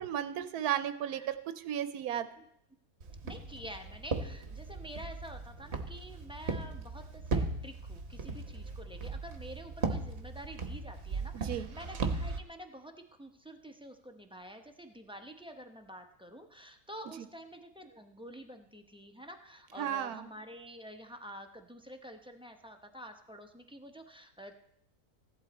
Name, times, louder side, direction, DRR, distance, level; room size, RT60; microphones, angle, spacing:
voice 1, 0.0-2.3 11.3-11.7 19.8-20.3, right 10 dB, 90° right, 11 dB, 1.2 m, -34 dB
Walk footsteps, 3.0-12.4, right 3 dB, 50° right, 1.2 m, -37 dB
voice 2, 3.2-24.6, equal, 5° right, 4 dB, 0.7 m, -48 dB
15.5 x 11.0 x 4.2 m, 0.73 s
omnidirectional pair, 1.6 m